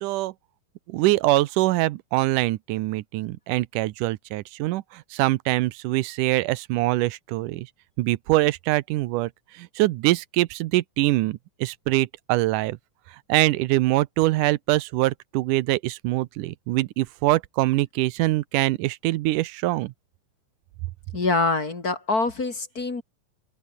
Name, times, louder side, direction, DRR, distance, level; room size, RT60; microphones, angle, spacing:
voice 1, 0.0-0.3 0.9-7.7 8.0-12.8 13.3-19.9, right 18 dB, 85° right, 2.3 m, -24 dB
voice 2, 21.1-23.0, left 3 dB, 30° left, 2.6 m, -25 dB
open air
omnidirectional pair, 3.6 m